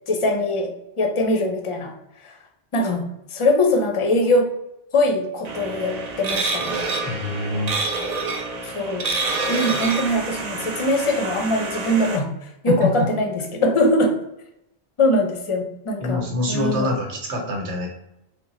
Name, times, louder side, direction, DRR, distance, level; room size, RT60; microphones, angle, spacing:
voice 1, 0.1-1.9 2.7-3.0 3.3-4.5 4.9-6.8 8.6-9.1 9.5-12.3 12.6-14.1 15.0-16.2 16.5-16.9, left 1 dB, 35° left, 3 dB, 0.5 m, -22 dB
sound 1, 5.4-12.2, right 3 dB, 45° right, 0.6 m, -27 dB
voice 2, 7.0-7.7 12.7-13.1 16.0-17.9, left 2 dB, 85° right, 0 dB, 1.3 m, -25 dB
3.7 x 2.2 x 4.0 m, 0.85 s
omnidirectional pair, 1.1 m